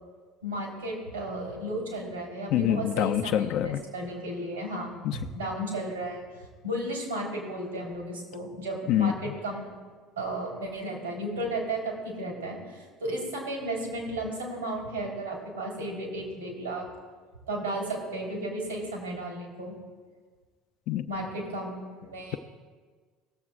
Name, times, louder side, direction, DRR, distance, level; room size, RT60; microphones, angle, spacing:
voice 1, 0.4-3.3 3.6-6.2 6.6-9.7 10.2-16.8 17.5-19.7 21.1-21.7 22.0-22.4, right 1 dB, 90° right, -1 dB, 3.2 m, -34 dB
voice 2, 2.5-3.8 5.0-5.2 8.9-9.1 20.9-21.1, left 11 dB, 60° left, 9 dB, 0.4 m, -25 dB
19.0 x 7.4 x 2.4 m, 1.5 s
hypercardioid pair, 65°, 0 cm